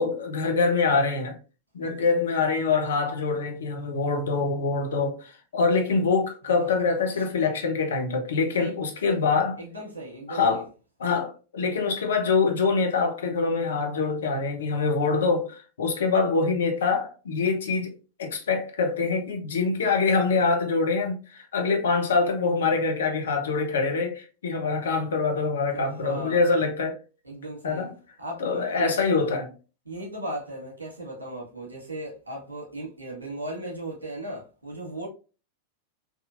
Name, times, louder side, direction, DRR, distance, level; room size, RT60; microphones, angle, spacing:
voice 1, 0.0-1.3 1.7-9.6 10.3-10.6 11.0-17.9 18.2-27.0 27.6-27.9 28.4-29.5, left 4 dB, 65° left, 0.8 m, -25 dB
voice 2, 9.6-10.7 25.7-26.6 27.2-27.9 28.2-29.1 29.8-35.1, right 1 dB, 75° right, 1.5 m, -37 dB
3.6 x 2.8 x 2.5 m
figure-of-eight pair, 90°, 0 cm